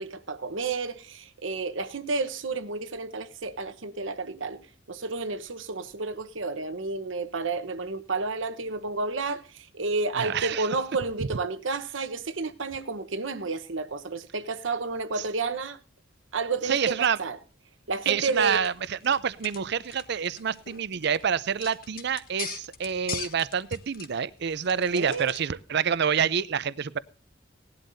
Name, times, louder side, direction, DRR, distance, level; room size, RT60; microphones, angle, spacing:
voice 1, 0.0-4.6 4.9-15.8 16.3-17.4 17.9-18.6 24.9-25.3, right 3 dB, 75° right, 1.1 m, -31 dB
voice 2, 10.2-10.7 15.2-15.3 16.6-17.2 18.1-27.0, right 7 dB, 60° right, 0.5 m, -27 dB
sound 1, 18.3-25.5, left 8 dB, 50° left, 1.4 m, -43 dB
18.5 x 11.5 x 2.7 m
head